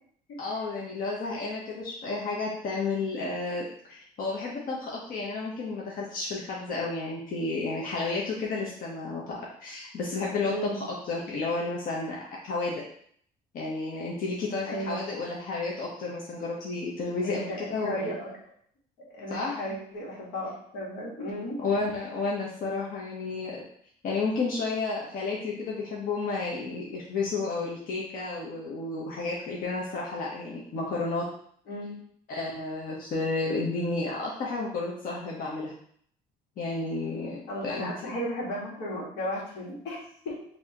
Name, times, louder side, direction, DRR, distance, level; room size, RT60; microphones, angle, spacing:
voice 1, 0.4-12.8 13.5-18.1 19.3-19.6 21.6-23.6 24.0-31.2 32.3-35.7 36.6-38.1, left 3 dB, 55° left, -4 dB, 1.0 m, -32 dB
voice 2, 10.4-10.9 14.6-15.0 17.2-18.3 19.1-21.5 31.7-32.0 37.5-40.3, equal, 85° left, -4 dB, 1.7 m, -35 dB
5.3 x 2.8 x 2.9 m, 0.62 s
cardioid pair, 110°, 17 cm